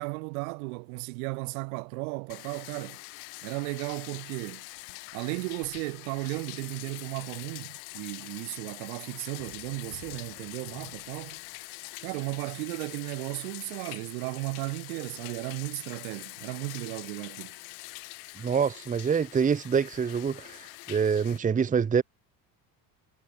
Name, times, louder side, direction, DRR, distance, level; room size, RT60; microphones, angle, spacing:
voice 1, 0.0-3.0 3.4-4.6 5.1-11.4 12.0-17.5, right 31 dB, 85° right, 5.1 m, -35 dB
Bathtub (filling or washing), 2.3-21.4, left 31 dB, 85° left, 3.7 m, -44 dB
voice 2, 18.4-22.0, right 6 dB, 20° right, 1.1 m, -26 dB
cardioid pair, 135°, 41 cm